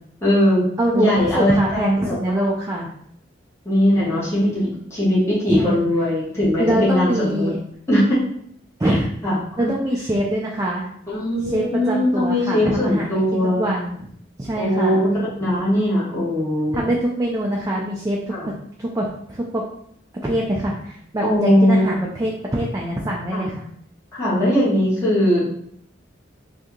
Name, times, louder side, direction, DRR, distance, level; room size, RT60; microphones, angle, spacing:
voice 1, 0.2-0.6 0.9-2.5 3.6-7.5 7.9-8.2 8.8-8.9 9.2-9.7 11.1-13.8 14.5-16.8 18.3-18.5 21.2-21.9 23.3-23.5 24.1-25.5, equal, 15° left, -10 dB, 1.2 m, -20 dB
voice 2, 0.8-2.9 5.5-5.8 6.6-7.6 8.8-10.9 11.4-14.1 14.4-15.1 16.7-18.5 18.8-19.6 20.1-23.7, right 1 dB, 15° right, -2 dB, 0.3 m, -24 dB
2.7 x 2.7 x 3.6 m, 0.68 s
head